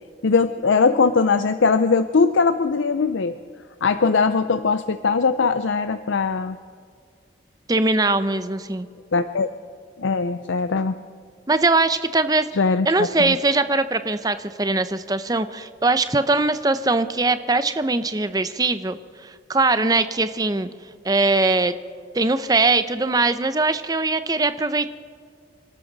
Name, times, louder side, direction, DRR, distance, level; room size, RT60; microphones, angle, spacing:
voice 1, 0.2-3.4 3.8-6.6 9.1-9.5 10.0-10.9 12.5-13.4, left 4 dB, 85° left, 10 dB, 0.6 m, -20 dB
voice 2, 7.7-8.9 11.5-12.5 12.9-20.7 21.0-21.7 22.1-24.9, right 3 dB, 20° right, 11 dB, 0.6 m, -21 dB
28.5 x 12.5 x 4.0 m, 2.2 s
head